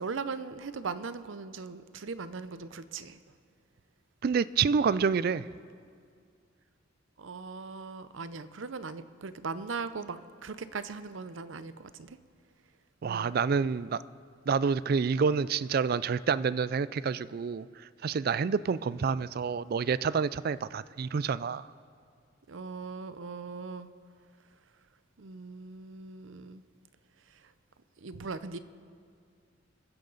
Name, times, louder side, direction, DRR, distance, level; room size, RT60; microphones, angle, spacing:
voice 1, 0.0-3.2 7.2-12.2 13.0-13.3 18.7-18.8 22.5-23.9 25.2-26.6 28.0-28.6, right 4 dB, 85° right, 13 dB, 0.7 m, -39 dB
voice 2, 4.2-5.5 13.0-14.0 14.5-17.7 18.0-21.7, right 5 dB, 50° right, 18 dB, 0.3 m, -28 dB
28.5 x 10.5 x 4.0 m, 2.2 s
head